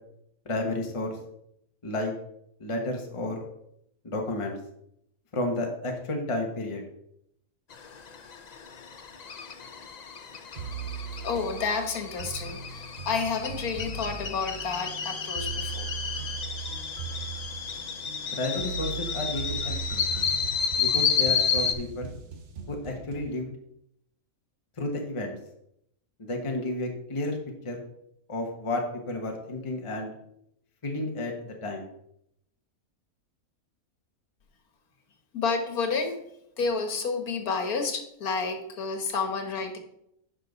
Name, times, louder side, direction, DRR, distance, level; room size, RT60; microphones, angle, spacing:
voice 1, 0.4-1.2 1.8-2.1 2.6-3.4 4.0-4.6 5.3-6.8 18.4-20.1 20.8-22.2 22.7-23.5 24.8-25.4 26.2-27.4 27.6-27.8 28.3-30.1 30.8-31.9, left 2 dB, 25° left, 2 dB, 1.1 m, -31 dB
sound 1, 7.7-21.7, left 6 dB, 50° left, 0.5 m, -31 dB
sound 2, 10.6-23.3, right 6 dB, 50° right, 1.2 m, -39 dB
voice 2, 11.2-15.9 16.2-16.3 35.3-36.2 36.6-39.8, left 4 dB, 80° left, 6 dB, 1.8 m, -30 dB
10.0 x 5.6 x 4.0 m, 0.76 s
omnidirectional pair, 1.5 m